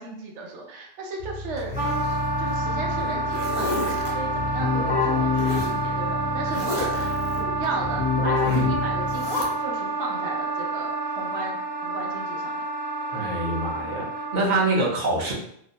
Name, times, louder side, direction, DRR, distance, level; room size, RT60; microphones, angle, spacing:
voice 1, 0.0-1.7 2.4-12.7, right 3 dB, 85° right, 0 dB, 0.9 m, -35 dB
Keyboard (musical), 1.2-9.5, left 4 dB, 75° left, 0.9 m, -28 dB
Zipper (clothing), 1.6-2.6 3.0-4.1 5.4-5.8 6.4-7.1 8.4-8.7 9.1-9.5, left 1 dB, 50° left, 0.5 m, -33 dB
Wind instrument woodwind instrument, 1.7-14.6, right 3 dB, 10° right, 0.5 m, -29 dB
voice 2, 13.1-15.3, right 2 dB, 45° right, -5 dB, 0.8 m, -25 dB
2.8 x 2.1 x 2.6 m, 0.69 s
omnidirectional pair, 1.2 m